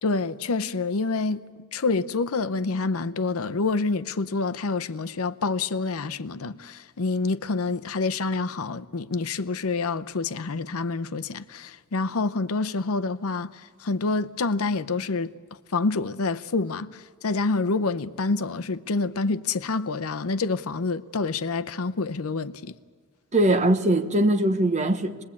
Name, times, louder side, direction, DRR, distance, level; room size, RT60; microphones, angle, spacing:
voice 1, 0.0-15.3 15.7-22.8, left 3 dB, 70° left, 0.7 m, -27 dB
voice 2, 23.3-25.2, right 1 dB, 30° right, 1.1 m, -21 dB
26.0 x 20.5 x 8.5 m
head